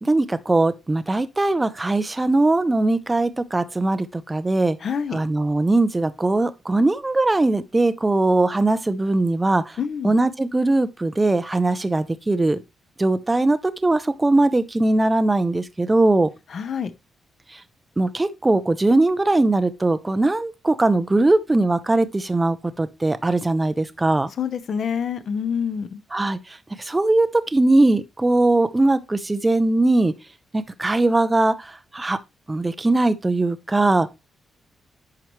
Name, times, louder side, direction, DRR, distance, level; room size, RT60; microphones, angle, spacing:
voice 1, 0.0-4.8 5.1-9.8 10.0-12.6 13.0-16.3 18.0-24.3 26.1-30.1 30.5-32.2 32.5-34.1, right 2 dB, 10° right, 0.4 m, -20 dB
voice 2, 4.8-5.2 9.8-10.1 16.5-16.9 24.4-26.0, left 7 dB, 45° left, 0.6 m, -26 dB
10.5 x 4.5 x 3.0 m
wide cardioid pair, 180°, 0 cm